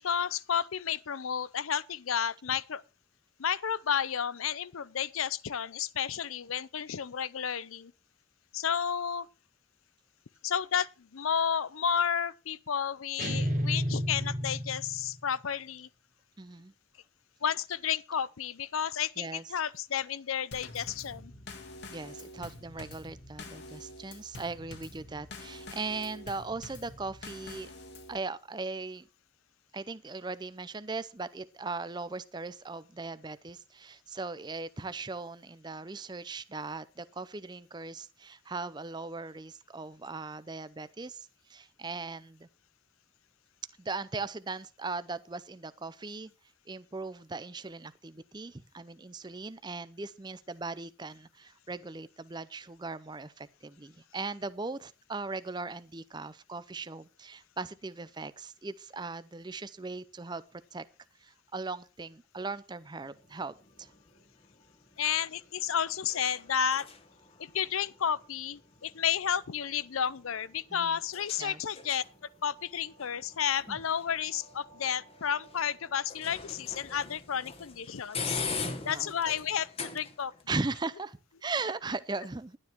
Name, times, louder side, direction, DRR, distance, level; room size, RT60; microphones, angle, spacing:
voice 1, 0.0-2.8 3.4-7.9 8.5-9.3 10.4-15.9 17.4-21.3 65.0-66.9 67.4-72.0 72.4-78.4 78.8-80.3, left 8 dB, 80° left, 0.6 m, -32 dB
sound 1, 13.2-15.2, equal, 40° right, 1.5 m, -31 dB
voice 2, 16.4-16.7 19.2-19.4 21.9-27.7 28.1-29.1 29.7-42.5 43.8-46.3 46.7-60.9 61.2-63.9 70.7-71.0 71.4-71.6 73.7-73.8 78.5-79.1 80.5-82.6, right 3 dB, 20° right, 0.5 m, -39 dB
Drum kit / Snare drum / Bass drum, 20.5-28.2, left 2 dB, 55° left, 1.8 m, -46 dB
sound 2, 63.0-80.4, left 4 dB, 30° left, 1.2 m, -43 dB
11.5 x 9.7 x 4.5 m
head